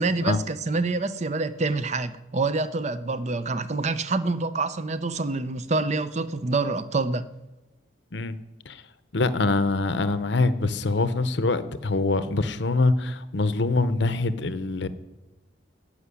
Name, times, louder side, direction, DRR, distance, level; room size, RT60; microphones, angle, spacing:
voice 1, 0.0-7.2, right 3 dB, 35° right, 0.6 m, -26 dB
voice 2, 9.1-14.9, left 3 dB, 60° left, 0.8 m, -24 dB
15.0 x 5.8 x 10.0 m
head